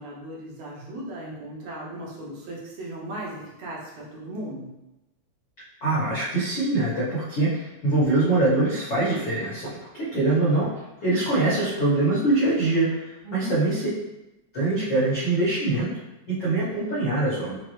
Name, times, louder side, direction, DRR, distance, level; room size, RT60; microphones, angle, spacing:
voice 1, 0.0-4.7 13.2-13.6, right 1 dB, 70° right, -4 dB, 1.9 m, -36 dB
voice 2, 5.8-10.7 11.0-13.8 14.5-15.9 16.3-17.6, right 2 dB, 70° left, -9 dB, 1.1 m, -23 dB
5.4 x 2.1 x 3.1 m, 0.98 s
omnidirectional pair, 3.5 m